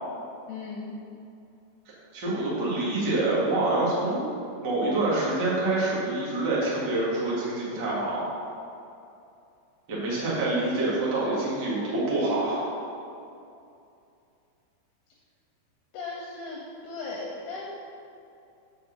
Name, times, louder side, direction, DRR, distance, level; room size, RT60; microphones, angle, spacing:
voice 1, 0.5-1.0 2.3-2.4 15.9-17.7, left 3 dB, 80° left, -4 dB, 2.7 m, -37 dB
voice 2, 2.1-4.3 4.6-8.2 9.9-12.7, right 2 dB, 60° right, -7 dB, 1.1 m, -26 dB
6.5 x 4.2 x 6.3 m, 2.6 s
omnidirectional pair, 4.9 m